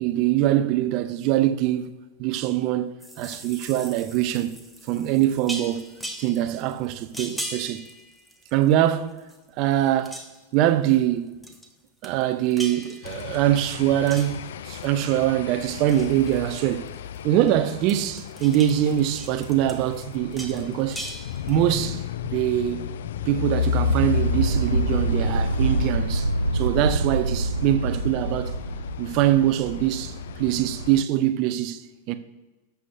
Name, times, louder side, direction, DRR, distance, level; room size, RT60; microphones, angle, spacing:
voice 1, 0.0-1.9 2.2-4.6 4.9-5.9 6.2-7.8 8.5-9.1 9.6-10.1 10.5-11.4 12.0-16.9 17.2-21.0 21.5-22.9 23.3-28.6 29.0-32.1, right 12 dB, 40° right, 0.6 m, -23 dB
sound 1, 3.0-8.9 9.2-9.7 10.0-10.5 11.4-11.7 12.0-13.6 14.1-15.1 15.5-17.5 17.8-21.8, right 1 dB, 5° left, 1.1 m, -40 dB
sound 2, 13.0-31.0, left 9 dB, 60° left, 0.3 m, -33 dB
sound 3, 23.8-31.0, right 2 dB, 80° right, 0.4 m, -26 dB
17.0 x 7.1 x 2.4 m
figure-of-eight pair, 90°, 0 cm